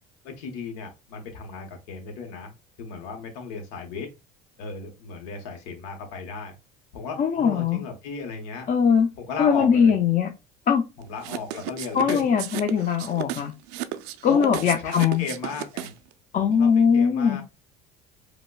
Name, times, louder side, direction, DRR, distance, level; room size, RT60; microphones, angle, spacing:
voice 1, 0.2-2.5 2.8-4.1 4.6-6.5 6.9-8.7 9.2-10.0 11.0-12.2 14.3-16.0 16.3-17.4, left 5 dB, 90° left, 0.9 m, -35 dB
voice 2, 7.2-7.9 8.7-9.1 9.4-10.3 10.7-10.9 11.9-13.5 14.2-15.2 16.3-17.4, left 6 dB, 40° left, 0.5 m, -21 dB
sound 1, 11.2-16.1, right 14 dB, 90° right, 0.4 m, -34 dB
4.9 x 2.1 x 2.2 m
supercardioid pair, 105°, 20 cm